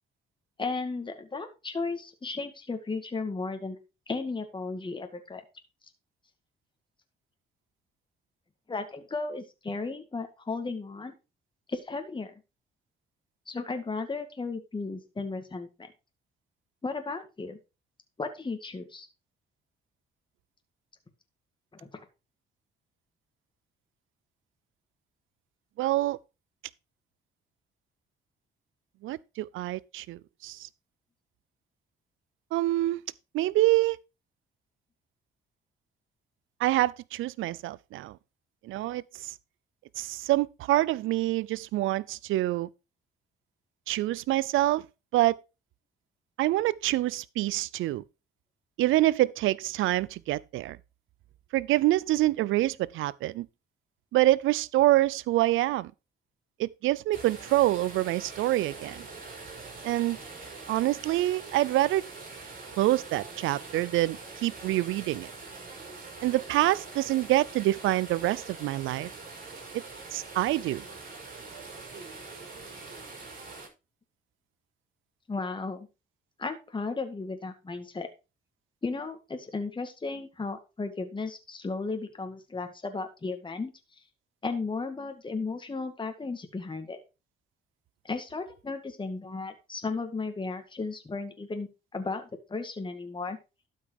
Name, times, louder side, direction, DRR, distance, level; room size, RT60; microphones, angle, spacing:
voice 1, 0.6-3.8 4.1-5.4 8.7-11.1 11.7-12.3 13.5-15.7 16.8-17.6 18.2-19.1 21.7-22.0 75.3-75.9 76.4-78.1 78.8-83.7 84.4-87.0 88.0-93.4, left 3 dB, 25° left, 2.0 m, -35 dB
voice 2, 25.8-26.2 29.0-30.7 32.5-33.0 33.3-34.0 36.6-38.2 38.6-39.3 40.0-42.7 43.9-44.8 45.1-45.4 46.4-48.0 48.8-50.8 51.5-53.5 54.1-55.9 56.6-59.0 59.8-60.2 60.7-62.0 62.8-65.3 66.2-69.1 69.7-69.8 70.1-70.8, right 16 dB, 85° right, 0.5 m, -26 dB
sound 1, 57.1-73.7, right 4 dB, 45° right, 5.7 m, -44 dB
12.5 x 5.5 x 4.8 m
cardioid pair, 90°, 20 cm